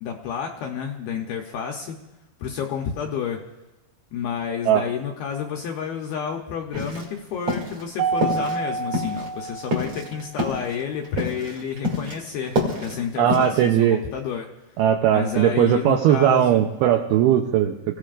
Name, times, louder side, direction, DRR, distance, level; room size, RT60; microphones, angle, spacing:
voice 1, 0.0-2.0 2.4-3.4 4.1-14.5 15.1-16.6, left 7 dB, 75° left, 1 dB, 2.3 m, -30 dB
sound 1, 6.7-7.2 7.5-7.8 8.2-8.6 8.9-12.2 12.4-13.7, left 1 dB, 35° right, 2.7 m, -27 dB
Mallet percussion, 8.0-10.4, right 4 dB, 65° right, 3.4 m, -28 dB
voice 2, 13.2-14.0 14.8-18.0, right 10 dB, 85° right, 3 dB, 2.2 m, -19 dB
29.5 x 16.5 x 2.5 m, 1.0 s
omnidirectional pair, 5.4 m